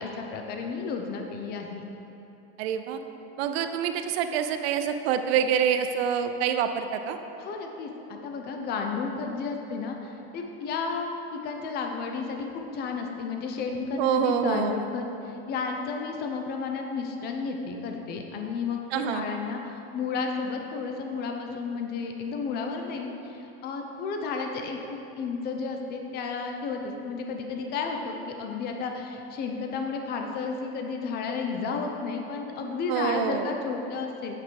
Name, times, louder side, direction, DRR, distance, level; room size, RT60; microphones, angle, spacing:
voice 1, 0.0-1.8 7.4-34.4, left 4 dB, 30° left, 3 dB, 0.7 m, -32 dB
voice 2, 2.6-3.0 3.4-7.2 14.0-14.8 18.9-19.3 32.9-33.5, right 8 dB, 85° right, 8 dB, 0.6 m, -26 dB
8.5 x 5.0 x 4.7 m, 3.0 s
supercardioid pair, 155°, 31 cm